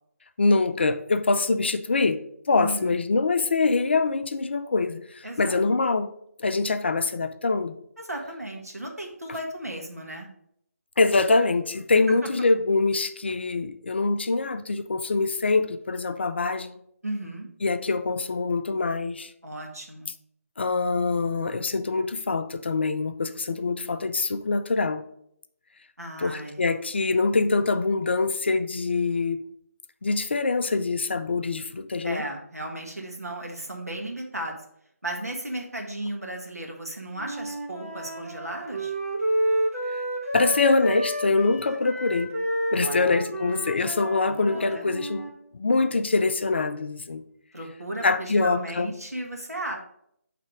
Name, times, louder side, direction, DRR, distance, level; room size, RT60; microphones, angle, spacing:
voice 1, 0.4-2.2 2.5-6.1 6.4-7.8 11.0-16.8 17.6-19.3 20.6-25.0 26.2-29.4 30.0-32.2 39.9-40.0 40.3-42.3 42.7-47.2 48.0-48.9, left 3 dB, 45° left, 10 dB, 0.4 m, -24 dB
voice 2, 2.6-2.9 5.2-5.6 8.0-10.3 12.2-12.3 17.0-17.5 19.4-20.1 26.0-26.7 32.0-34.6 35.0-38.9 42.8-43.2 44.2-44.9 47.5-49.8, right 1 dB, 85° right, 0 dB, 1.5 m, -35 dB
Wind instrument woodwind instrument, 37.2-45.3, right 1 dB, 65° right, 1.5 m, -30 dB
6.2 x 3.3 x 5.1 m, 0.71 s
figure-of-eight pair, 150°, 8 cm